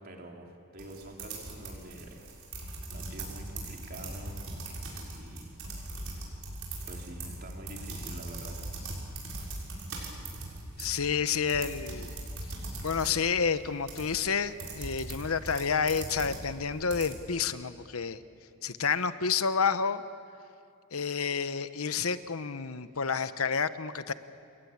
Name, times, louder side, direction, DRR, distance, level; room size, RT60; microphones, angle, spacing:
voice 1, 0.0-2.3 2.9-4.5 5.0-5.5 6.8-9.3, right 1 dB, 45° right, 1 dB, 3.5 m, -46 dB
sound 1, 0.8-17.1, right 2 dB, 75° right, 6.5 m, -40 dB
voice 2, 10.8-12.1 12.8-18.2 18.6-20.0 20.9-24.1, left 6 dB, 85° left, 12 dB, 1.0 m, -29 dB
29.0 x 21.5 x 8.8 m, 2.6 s
head